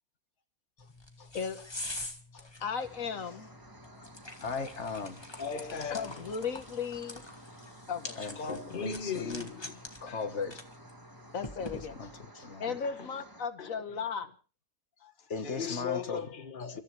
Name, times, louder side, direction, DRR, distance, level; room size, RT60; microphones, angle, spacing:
sound 1, 0.8-12.2, left 2 dB, 20° left, 1.7 m, -46 dB
voice 1, 2.6-3.5 5.9-7.2 7.9-8.2 11.3-11.9 12.6-14.3, left 6 dB, 85° left, 1.7 m, -35 dB
sound 2, 2.8-13.5, right 1 dB, 15° right, 1.5 m, -53 dB
voice 2, 4.4-5.2 8.2-9.5 10.0-10.6 11.7-12.7 15.0-16.2, left 5 dB, 60° left, 1.9 m, -38 dB
voice 3, 5.4-6.4 8.3-9.8 10.1-10.2 11.2-11.4 12.6-13.2 13.6-14.0 15.0-16.8, left 6 dB, 40° left, 1.5 m, -39 dB
29.5 x 14.0 x 3.3 m
omnidirectional pair, 1.4 m